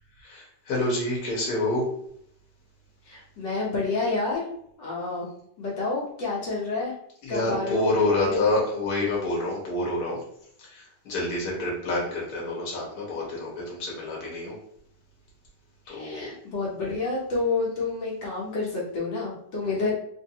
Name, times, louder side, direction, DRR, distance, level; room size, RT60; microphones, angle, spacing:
voice 1, 0.2-1.9 7.2-10.2 10.6-14.6 15.9-16.3 19.6-19.8, left 2 dB, 60° left, -4 dB, 1.6 m, -28 dB
voice 2, 3.0-4.5 4.8-5.3 5.6-6.9 7.3-8.4 15.9-19.9, left 3 dB, 80° left, -5 dB, 1.6 m, -29 dB
3.7 x 2.6 x 2.8 m, 0.68 s
omnidirectional pair, 2.0 m